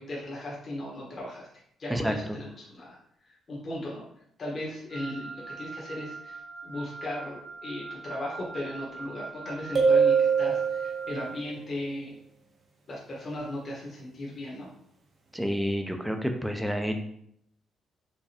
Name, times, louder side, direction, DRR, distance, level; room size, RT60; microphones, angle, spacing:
voice 1, 0.0-1.5 1.8-3.0 3.3-4.0 4.4-12.2 12.9-14.7, left 1 dB, 45° left, -4 dB, 1.1 m, -37 dB
Wind instrument woodwind instrument, 4.9-11.3, right 4 dB, 80° right, 1.3 m, -42 dB
sound 1, 9.8-11.2, right 5 dB, 55° right, 0.8 m, -22 dB
voice 2, 15.3-17.0, equal, ahead, 4 dB, 0.5 m, -29 dB
4.7 x 2.2 x 2.8 m, 0.71 s
cardioid pair, 90°, 0 cm